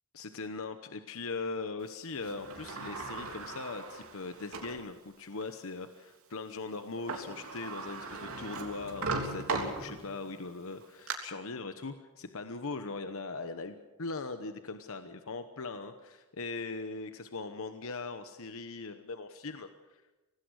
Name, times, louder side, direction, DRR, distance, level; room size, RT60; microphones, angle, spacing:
voice 1, 0.1-20.0, left 3 dB, 65° left, 8 dB, 1.1 m, -40 dB
Sliding door, 2.2-4.8 5.4-5.5 6.8-6.9 7.1-10.3 10.7-11.1, right 3 dB, 70° right, 3.3 m, -38 dB
25.0 x 18.5 x 6.4 m, 1.1 s
head